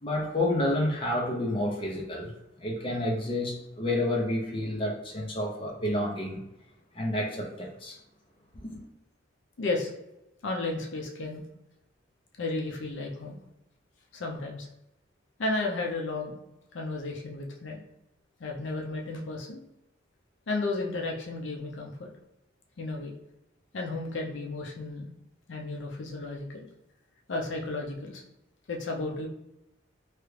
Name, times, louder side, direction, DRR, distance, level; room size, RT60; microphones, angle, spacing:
voice 1, 0.0-2.3 2.6-6.4 6.9-7.9 8.6-8.8, left 1 dB, 30° left, 0.6 m, -29 dB
voice 2, 9.6-9.9 10.4-11.5 12.4-13.4 14.1-14.7 15.4-16.4 16.7-17.8 18.4-19.6 20.5-22.1 22.8-23.1 23.7-25.1 25.5-26.7 27.3-28.2 28.7-29.3, left 2 dB, 70° left, 0.5 m, -33 dB
3.1 x 2.4 x 3.2 m
head